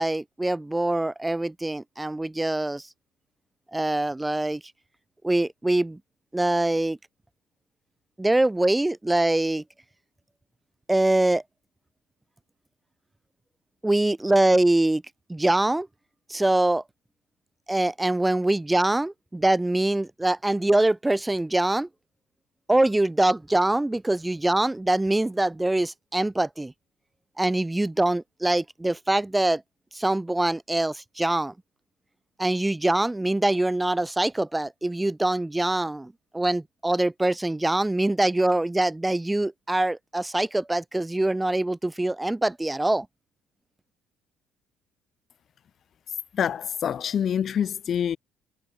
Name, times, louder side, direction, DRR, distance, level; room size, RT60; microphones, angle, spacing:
voice 1, 0.0-2.9 3.7-4.6 5.2-6.0 6.3-7.0 8.2-9.6 10.9-11.4 13.8-15.0 15.3-15.9 16.3-16.8 17.7-21.9 22.7-26.7 27.4-29.6 29.9-31.5 32.4-43.1, right 2 dB, 10° right, 0.9 m, -24 dB
voice 2, 46.3-48.2, left 8 dB, 45° left, 0.4 m, -26 dB
cardioid pair, 125°, 0 cm